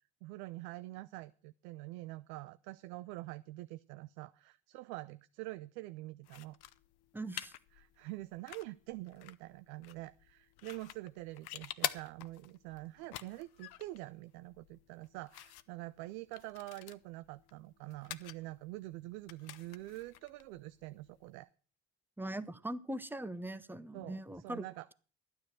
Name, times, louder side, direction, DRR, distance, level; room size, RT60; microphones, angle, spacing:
voice 1, 0.2-6.6 7.7-21.5 23.9-24.9, right 19 dB, 80° right, 14 dB, 0.5 m, -46 dB
sound 1, 6.2-21.4, left 13 dB, 55° left, 0.8 m, -48 dB
voice 2, 7.1-7.5 22.2-24.6, right 1 dB, 5° right, 14 dB, 0.9 m, -41 dB
11.5 x 9.6 x 6.0 m, 0.39 s
hypercardioid pair, 50°, 45 cm